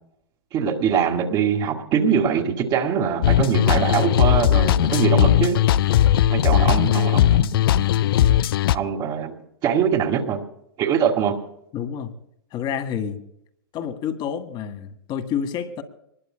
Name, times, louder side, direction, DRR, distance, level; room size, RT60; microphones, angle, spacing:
voice 1, 0.5-5.6 6.3-7.6 8.7-9.3 9.6-10.4 10.8-11.4, right 7 dB, 35° right, 0 dB, 2.1 m, -22 dB
sound 1, 3.2-8.8, left 12 dB, 65° left, 0.5 m, -18 dB
voice 2, 11.7-12.1 12.5-13.2 13.7-15.8, left 8 dB, 35° left, 9 dB, 1.9 m, -28 dB
25.5 x 20.5 x 2.3 m, 0.78 s
hypercardioid pair, 105°, 13 cm